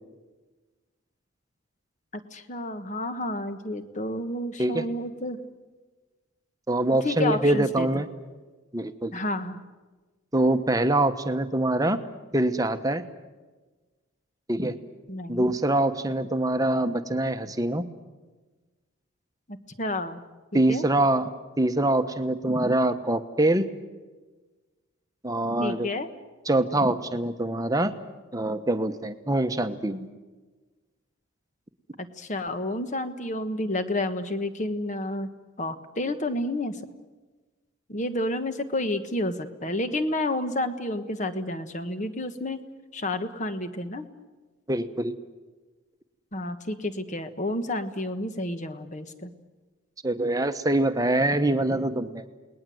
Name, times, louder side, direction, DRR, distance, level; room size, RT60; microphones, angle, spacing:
voice 1, 2.3-5.4 7.0-8.0 9.1-9.6 15.1-15.5 19.5-20.2 20.5-20.8 25.6-26.1 32.0-35.3 35.6-36.8 37.9-42.6 42.9-44.1 46.3-49.3, left 1 dB, 35° left, 9 dB, 1.4 m, -30 dB
voice 2, 6.7-8.1 8.7-9.2 10.3-12.0 12.3-13.0 14.5-14.7 15.3-17.8 20.5-21.3 21.6-23.6 25.2-25.9 26.5-27.9 28.3-30.1 44.7-45.1 50.0-52.2, right 1 dB, 15° right, 9 dB, 1.1 m, -24 dB
29.5 x 20.0 x 7.8 m, 1.3 s
head